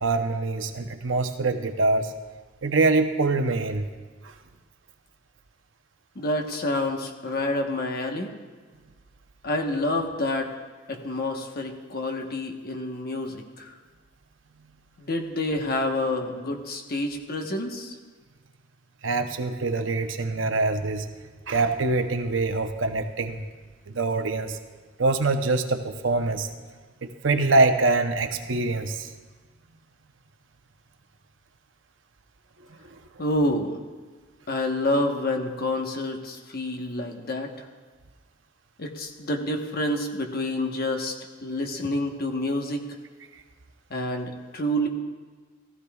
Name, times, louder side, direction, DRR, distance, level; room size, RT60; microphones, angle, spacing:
voice 1, 0.0-2.1 2.6-3.9 19.0-21.1 21.5-23.4 23.9-24.6 25.0-26.5 27.0-29.1, right 3 dB, 75° right, 7 dB, 0.8 m, -24 dB
voice 2, 6.1-8.3 9.4-10.5 10.9-13.7 15.0-17.9 33.2-33.8 34.5-37.5 38.8-41.1 41.4-42.8 43.9-44.9, left 1 dB, 50° left, 3 dB, 1.1 m, -28 dB
15.0 x 14.5 x 2.4 m, 1.4 s
head